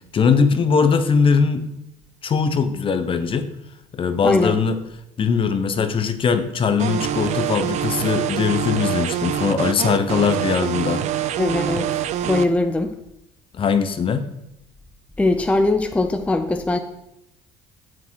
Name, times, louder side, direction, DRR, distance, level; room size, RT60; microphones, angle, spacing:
voice 1, 0.1-1.6 2.2-3.5 3.9-4.8 5.2-11.0 13.5-14.2, left 5 dB, 35° left, 10 dB, 0.8 m, -20 dB
voice 2, 4.2-4.6 11.3-13.0 15.2-16.8, left 2 dB, 10° left, 7 dB, 0.5 m, -21 dB
sound 1, 6.8-12.4, right 10 dB, 50° right, 0.5 m, -25 dB
7.1 x 5.9 x 4.6 m, 0.85 s
supercardioid pair, 80°, 15 cm